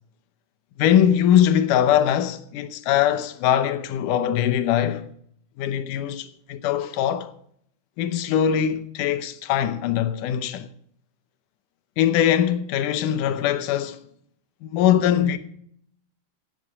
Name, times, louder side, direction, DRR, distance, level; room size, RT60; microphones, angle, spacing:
voice 1, 0.8-5.1 5.6-7.3 8.0-10.7 12.0-14.0 14.6-15.4, left 10 dB, 80° left, 2.4 m, -21 dB
15.5 x 8.9 x 4.9 m
omnidirectional pair, 3.8 m